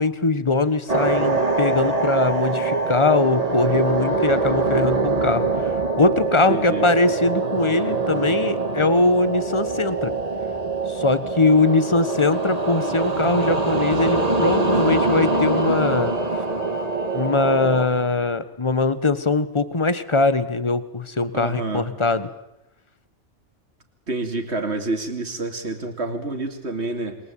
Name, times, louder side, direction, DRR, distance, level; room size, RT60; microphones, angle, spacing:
voice 1, 0.0-5.5 5.9-10.1 10.9-16.2 17.1-22.3, left 3 dB, 25° left, 13 dB, 1.5 m, -21 dB
sound 1, 0.9-17.9, right 3 dB, 30° right, 2.2 m, -23 dB
voice 2, 6.5-6.9 21.3-21.9 24.1-27.2, right 2 dB, 60° right, 4 dB, 3.1 m, -28 dB
28.0 x 23.0 x 8.8 m, 0.89 s
omnidirectional pair, 1.2 m